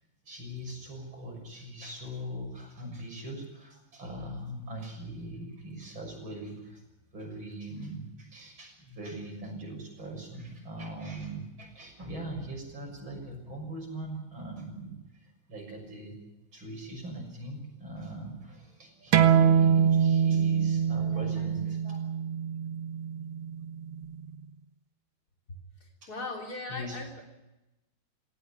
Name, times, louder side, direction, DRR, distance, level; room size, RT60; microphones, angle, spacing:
voice 1, 0.3-6.8 7.1-16.2 16.5-22.1 26.0-26.1 26.7-27.0, right 1 dB, 70° right, 1 dB, 7.3 m, -41 dB
sound 1, 19.1-24.3, right 8 dB, 85° right, 2.1 m, -24 dB
voice 2, 25.5-27.3, left 2 dB, 45° left, 1 dB, 4.1 m, -39 dB
18.5 x 17.0 x 10.0 m, 0.97 s
omnidirectional pair, 2.3 m